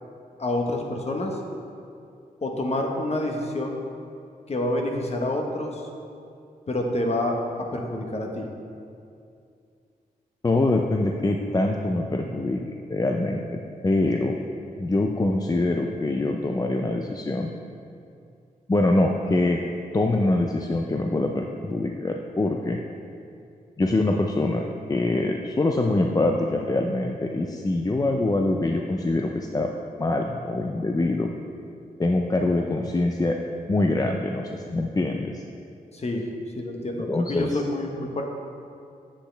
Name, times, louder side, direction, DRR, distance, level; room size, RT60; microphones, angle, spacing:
voice 1, 0.4-1.4 2.4-3.8 4.5-5.8 6.7-8.5 35.9-36.2 36.6-38.2, left 1 dB, 40° left, 1 dB, 1.1 m, -27 dB
voice 2, 10.4-12.6 12.9-14.3 14.8-17.5 18.7-19.6 19.9-22.8 23.8-29.7 30.0-31.3 32.0-33.4 33.7-35.4 37.1-37.6, left 2 dB, 25° left, 2 dB, 0.5 m, -24 dB
8.3 x 8.0 x 3.4 m, 2.5 s
cardioid pair, 70°, 16 cm